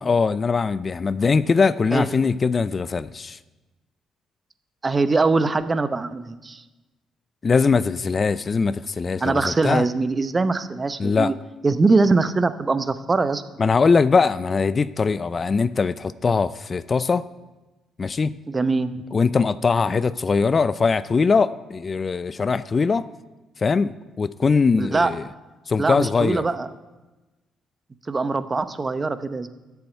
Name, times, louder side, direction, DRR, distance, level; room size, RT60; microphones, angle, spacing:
voice 1, 0.0-3.4 7.4-9.9 11.0-11.3 13.6-17.3 18.0-18.4 19.1-23.1 23.6-25.2 25.7-26.4, left 4 dB, 40° left, 17 dB, 0.4 m, -21 dB
voice 2, 4.8-6.6 9.2-11.3 11.6-13.4 18.5-18.9 24.8-25.1 25.8-26.7 28.1-29.5, right 3 dB, 30° right, 12 dB, 0.7 m, -22 dB
7.9 x 7.1 x 8.1 m, 1.1 s
supercardioid pair, 60°, 0 cm